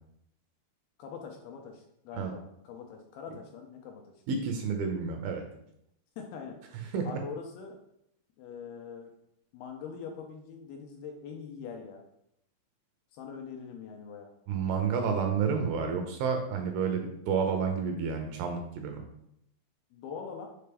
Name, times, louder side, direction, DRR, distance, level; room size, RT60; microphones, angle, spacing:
voice 1, 1.0-4.1 6.2-6.6 7.0-7.8 8.4-9.1 9.5-12.0 13.1-14.3 19.9-20.5, left 6 dB, 85° left, 2 dB, 2.3 m, -43 dB
voice 2, 4.3-5.4 6.9-7.1 14.5-19.0, right 6 dB, 80° right, 4 dB, 2.3 m, -30 dB
6.7 x 4.2 x 3.4 m, 0.76 s
omnidirectional pair, 4.8 m